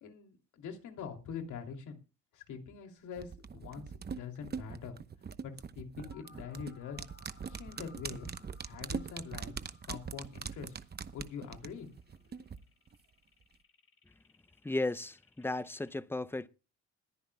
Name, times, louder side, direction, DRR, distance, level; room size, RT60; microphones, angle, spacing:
voice 1, 0.0-2.0 2.3-5.0 5.4-7.0 7.5-8.3 8.6-9.5 9.8-10.7 11.1-11.9, left 6 dB, 80° left, 2.9 m, -44 dB
sound 1, 3.2-12.6 12.9-13.0, right 6 dB, 35° right, 0.9 m, -42 dB
sound 2, 6.0-16.0, left 4 dB, 50° left, 3.7 m, -63 dB
voice 2, 14.6-16.5, left 2 dB, 10° left, 0.6 m, -35 dB
21.5 x 10.0 x 2.3 m
cardioid pair, 90°, 30 cm